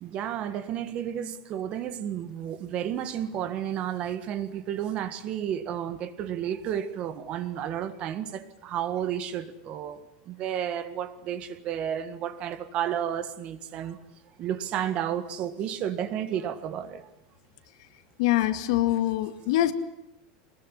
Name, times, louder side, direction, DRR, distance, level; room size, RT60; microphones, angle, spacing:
voice 1, 0.0-10.0 10.3-14.0 14.4-17.1, right 10 dB, 35° right, 1.7 m, -32 dB
voice 2, 18.2-19.7, left 14 dB, 65° left, 2.2 m, -24 dB
23.0 x 21.0 x 9.9 m
supercardioid pair, 165°, 3 cm